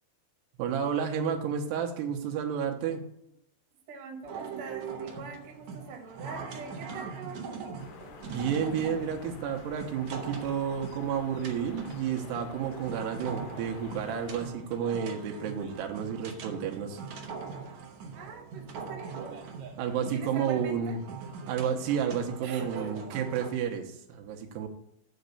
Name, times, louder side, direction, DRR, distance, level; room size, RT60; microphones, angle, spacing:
voice 1, 0.6-3.1 8.3-17.0 19.8-21.0 21.5-24.7, right 7 dB, 90° right, 3 dB, 3.1 m, -31 dB
voice 2, 3.9-7.8 18.1-19.4 20.0-21.0 22.4-23.0, right 4 dB, 50° right, 1 dB, 2.4 m, -43 dB
sound 1, 4.3-23.5, right 5 dB, 70° right, 1.8 m, -42 dB
sound 2, 7.8-14.5, left 5 dB, 85° left, 3.2 m, -49 dB
8.0 x 5.3 x 6.7 m, 0.74 s
omnidirectional pair, 4.6 m